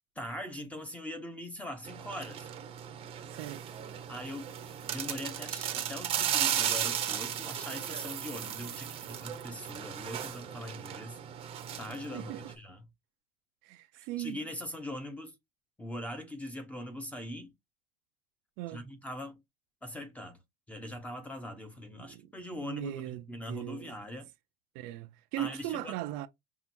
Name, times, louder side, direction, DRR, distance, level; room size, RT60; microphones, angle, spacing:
voice 1, 0.2-2.5 4.1-11.2 11.8-12.9 14.2-15.3 15.8-17.5 18.7-19.4 19.8-20.4 20.7-24.3 25.4-26.0, left 1 dB, 5° left, 0.8 m, -41 dB
sound 1, 1.9-12.5, right 9 dB, 30° right, 0.7 m, -36 dB
voice 2, 3.2-3.7 12.1-12.4 13.6-14.4 18.6-18.9 22.0-23.9 24.7-26.3, right 15 dB, 55° right, 0.5 m, -39 dB
5.7 x 2.5 x 2.6 m
cardioid pair, 155°, 20 cm